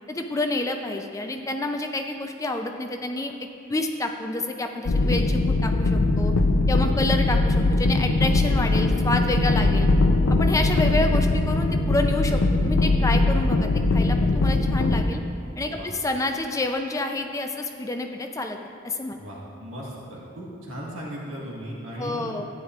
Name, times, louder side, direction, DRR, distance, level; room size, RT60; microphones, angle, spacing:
voice 1, 0.1-3.3 3.7-6.3 6.7-9.9 10.4-15.2 15.6-18.6 18.8-19.2 22.0-22.4, left 2 dB, 15° left, 4 dB, 0.4 m, -28 dB
sound 1, 4.9-15.0, left 2 dB, 70° left, 0.5 m, -21 dB
voice 2, 19.1-22.3, equal, 70° right, -5 dB, 1.7 m, -37 dB
13.5 x 9.7 x 2.4 m, 2.5 s
head